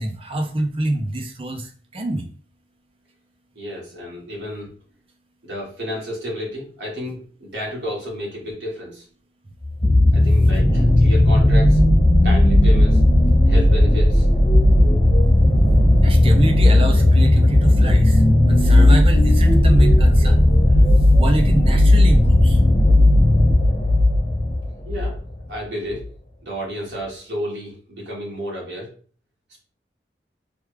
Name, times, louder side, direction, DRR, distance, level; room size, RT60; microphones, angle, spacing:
voice 1, 0.0-2.3 16.0-20.5 21.2-22.6, right 1 dB, 30° right, 4 dB, 0.5 m, -25 dB
voice 2, 3.5-4.7 5.4-9.0 10.1-11.8 12.2-13.0 13.5-14.2 24.8-25.2 25.5-26.0 26.4-28.9, equal, 85° right, -4 dB, 1.6 m, -31 dB
sound 1, 9.6-25.2 26.0-26.1, left 1 dB, 35° left, 1.3 m, -15 dB
3.4 x 2.3 x 3.1 m, 0.43 s
head